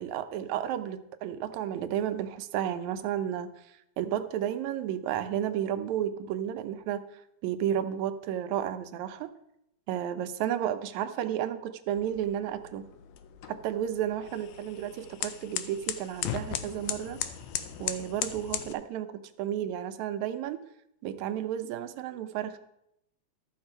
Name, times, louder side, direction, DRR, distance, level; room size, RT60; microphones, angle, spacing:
voice 1, 0.0-3.5 4.0-7.0 7.4-9.3 9.9-12.8 13.5-17.2 17.8-20.6 21.0-22.6, right 10 dB, 80° right, 10 dB, 1.9 m, -32 dB
sound 1, 12.0-18.7, left 10 dB, 75° left, 1.7 m, -37 dB
13.0 x 6.6 x 4.4 m, 0.81 s
omnidirectional pair, 3.5 m